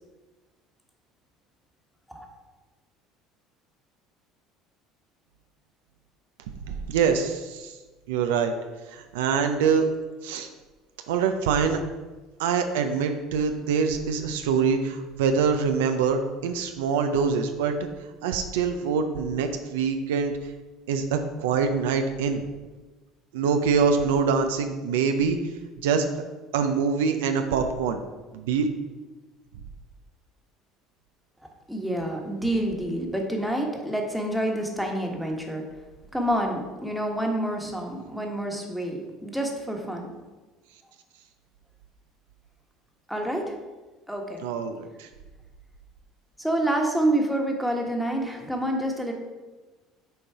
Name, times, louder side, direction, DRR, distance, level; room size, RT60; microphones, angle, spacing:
voice 1, 6.7-7.7 8.1-8.5 8.9-9.9 10.2-10.5 11.1-11.8 12.4-17.7 18.2-20.3 20.9-22.5 23.3-25.4 25.8-26.0 26.5-28.0 28.3-28.7 44.4-45.1, right 6 dB, 85° right, 6 dB, 0.5 m, -24 dB
voice 2, 31.7-35.6 36.1-40.1 43.1-43.6 44.1-44.4 46.4-49.1, right 1 dB, ahead, 1 dB, 1.3 m, -28 dB
6.9 x 3.8 x 4.7 m, 1.2 s
supercardioid pair, 85°, 0 cm